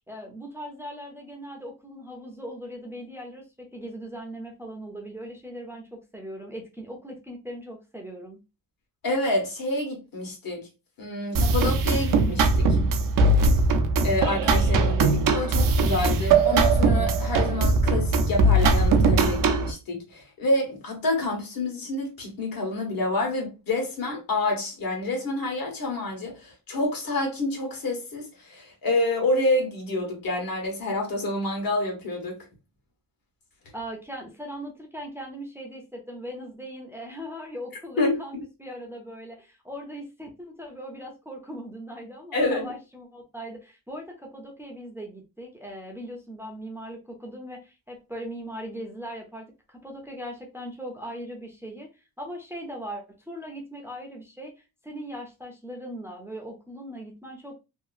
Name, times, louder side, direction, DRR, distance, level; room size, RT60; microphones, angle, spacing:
voice 1, 0.1-8.4 33.7-57.5, equal, 5° right, 0.5 m, -39 dB
voice 2, 9.0-10.7 11.0-12.8 14.0-32.4 38.0-38.4 42.3-42.7, left 2 dB, 70° left, 1.2 m, -28 dB
sound 1, 11.3-19.7, right 3 dB, 65° right, 0.5 m, -20 dB
2.8 x 2.3 x 2.4 m
wide cardioid pair, 160°, 36 cm